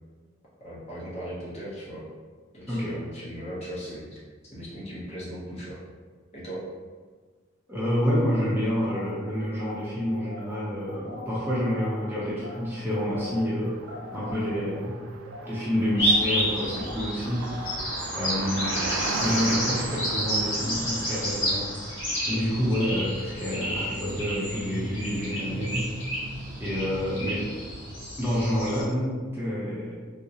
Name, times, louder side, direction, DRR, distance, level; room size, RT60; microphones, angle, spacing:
voice 1, 0.6-2.1 2.5-5.8 6.3-6.7 18.1-18.4, equal, 30° left, -7 dB, 0.8 m, -38 dB
voice 2, 2.7-3.0 7.7-13.8 14.1-14.9 15.4-17.5 18.1-18.7 19.2-21.7 22.3-25.9 26.6-27.5 28.2-29.9, equal, 10° right, -8 dB, 0.6 m, -28 dB
sound 1, 8.8-12.1 12.4-12.6 12.9-17.7, equal, 65° right, 1.0 m, -42 dB
Car passing by, 12.3-28.4, right 3 dB, 80° right, 0.3 m, -38 dB
sound 2, 16.0-28.8, equal, 70° left, 1.2 m, -30 dB
3.7 x 2.0 x 2.7 m, 1.5 s
head